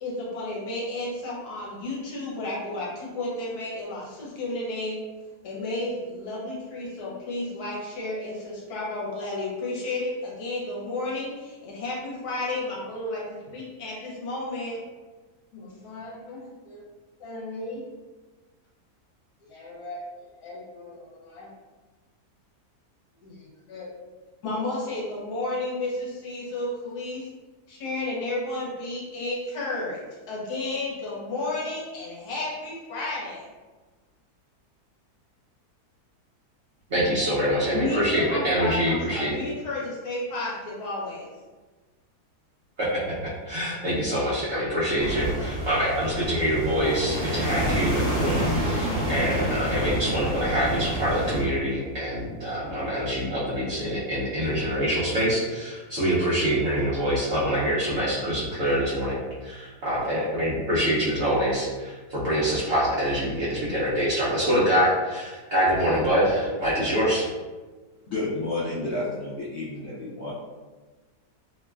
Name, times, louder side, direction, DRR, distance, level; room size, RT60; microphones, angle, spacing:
voice 1, 0.0-5.0 5.4-14.8 15.5-16.8 17.2-17.8 19.5-20.1 20.4-21.5 23.2-23.9 24.4-27.2 27.7-30.0 30.3-33.4 37.7-41.3, left 2 dB, 70° left, -5 dB, 1.3 m, -32 dB
voice 2, 36.9-39.3 42.8-43.1 43.5-67.3, equal, 60° right, -8 dB, 0.7 m, -25 dB
sound 1, 45.0-51.4, equal, 45° left, 1.2 m, -28 dB
voice 3, 68.1-70.3, left 2 dB, 90° left, -7 dB, 0.6 m, -30 dB
2.9 x 2.2 x 2.3 m, 1.3 s
omnidirectional pair, 1.7 m